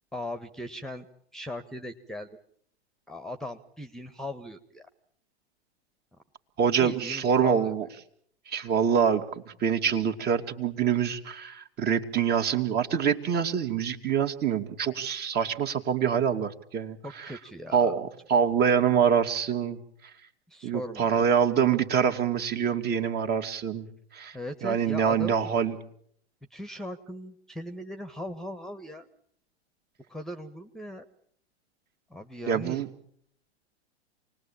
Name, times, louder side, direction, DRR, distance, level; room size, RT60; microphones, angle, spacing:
voice 1, 0.1-1.1 1.3-2.3 3.1-4.9 6.8-7.9 17.0-17.9 20.5-21.2 24.3-25.5 26.5-29.1 30.1-31.0 32.1-32.9, left 1 dB, ahead, 11 dB, 1.5 m, -39 dB
voice 2, 6.6-7.9 8.5-17.3 17.7-19.8 20.6-23.9 24.1-24.4 24.6-25.8 32.5-32.9, right 7 dB, 30° right, 7 dB, 2.5 m, -25 dB
28.5 x 20.0 x 8.9 m, 0.68 s
hypercardioid pair, 105°, 33 cm